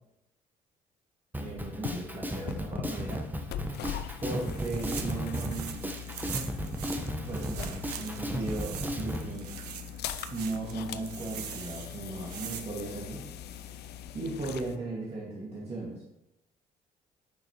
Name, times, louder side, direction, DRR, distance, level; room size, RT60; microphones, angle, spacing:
Drum kit, 1.3-9.3, equal, 10° right, 1.1 m, -35 dB
sound 1, 1.4-14.8, left 9 dB, 55° left, 0.5 m, -41 dB
voice 1, 1.4-3.2 4.2-5.8 7.3-9.5 10.3-13.2 14.1-16.0, right 2 dB, 30° right, -4 dB, 1.9 m, -37 dB
sound 2, 4.4-12.6, right 9 dB, 80° right, 0.6 m, -43 dB
9.1 x 5.9 x 3.0 m, 0.81 s
figure-of-eight pair, 50°, 20 cm